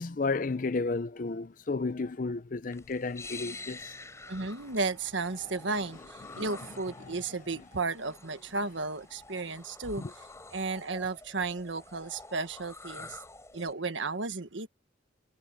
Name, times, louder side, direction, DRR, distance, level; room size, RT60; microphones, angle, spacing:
voice 1, 0.0-3.9 6.3-6.5 7.0-7.1 10.0-10.1, left 3 dB, 45° left, 0.5 m, -32 dB
sound 1, 2.7-13.7, left 3 dB, 15° left, 4.9 m, -48 dB
Bowed string instrument, 3.4-8.5, right 1 dB, 50° right, 4.6 m, -62 dB
voice 2, 4.3-10.3 10.5-13.2 13.5-14.7, right 3 dB, 90° right, 1.6 m, -34 dB
head